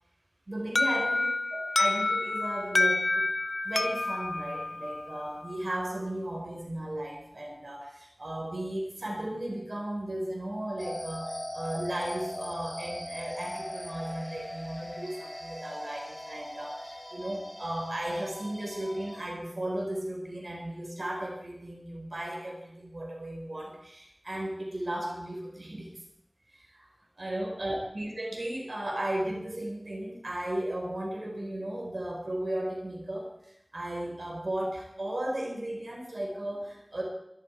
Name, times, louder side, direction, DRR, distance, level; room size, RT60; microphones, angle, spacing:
voice 1, 0.5-3.3 3.6-25.9 26.5-26.9 27.2-33.3 33.7-37.0, right 1 dB, 70° right, -1 dB, 4.8 m, -35 dB
Alarm, 0.8-5.5, left 2 dB, 80° left, 0.6 m, -28 dB
sound 1, 10.8-19.2, left 1 dB, 25° left, 6.5 m, -40 dB
22.5 x 13.5 x 4.7 m, 0.78 s
wide cardioid pair, 45°, 0 cm